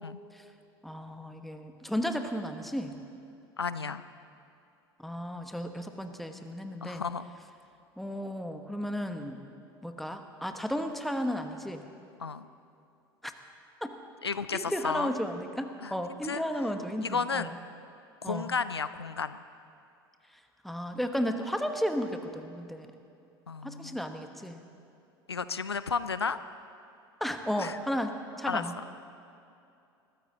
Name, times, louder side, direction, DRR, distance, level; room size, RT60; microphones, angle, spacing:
voice 1, 0.8-3.0 5.0-7.0 8.0-9.5 9.8-11.9 13.2-13.3 13.8-13.9 14.5-17.6 18.2-18.5 20.6-22.9 23.6-24.6 27.2-28.7, equal, ahead, 6 dB, 1.2 m, -34 dB
voice 2, 3.6-4.0 6.8-7.3 12.2-12.5 14.2-15.1 15.8-15.9 16.2-16.4 17.0-17.5 18.2-19.4 23.5-24.0 25.3-26.4 27.6-27.8 28.5-28.6, left 5 dB, 90° left, 14 dB, 0.4 m, -33 dB
20.0 x 14.5 x 3.9 m, 2.6 s
figure-of-eight pair, 70°, 13 cm